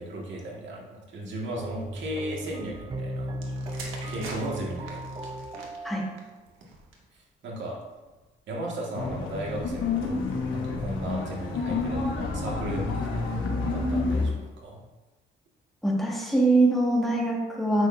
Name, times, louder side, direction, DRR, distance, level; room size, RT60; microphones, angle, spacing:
voice 1, 0.0-3.3 4.1-5.3 7.4-7.8 8.5-10.2 10.5-13.4 13.6-14.8, right 1 dB, 70° right, -2 dB, 1.9 m, -35 dB
sound 1, 1.6-6.2, right 1 dB, 20° right, 0.6 m, -36 dB
sound 2, 3.3-7.2 8.0-8.2, right 3 dB, 85° right, 1.3 m, -43 dB
sound 3, 8.9-14.3, left 3 dB, 85° left, 1.2 m, -29 dB
voice 2, 15.8-17.9, right 2 dB, ahead, -3 dB, 1.9 m, -23 dB
7.9 x 6.5 x 2.7 m, 1.2 s
cardioid pair, 90°, 20 cm